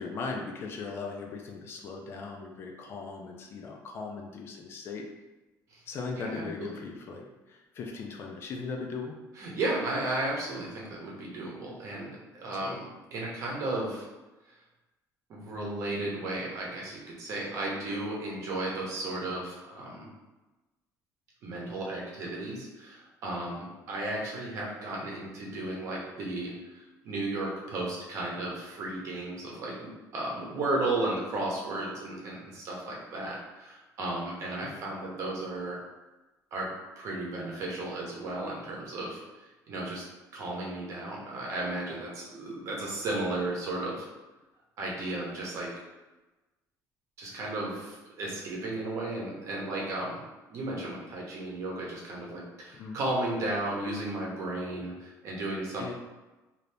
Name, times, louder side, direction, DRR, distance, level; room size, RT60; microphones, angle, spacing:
voice 1, 0.0-5.1 5.9-9.2 12.5-12.8 34.6-34.7 52.7-53.0 55.8-55.9, left 4 dB, 35° left, 1 dB, 0.4 m, -38 dB
voice 2, 6.2-6.7 9.4-14.1 15.3-20.1 21.4-35.8 36.5-36.7 37.0-39.2 39.7-40.0 40.3-44.1 44.8-45.7 47.2-50.2 50.5-55.9, right 2 dB, 50° right, -3 dB, 0.9 m, -34 dB
2.7 x 2.6 x 3.3 m, 1.1 s
cardioid pair, 175°, 7 cm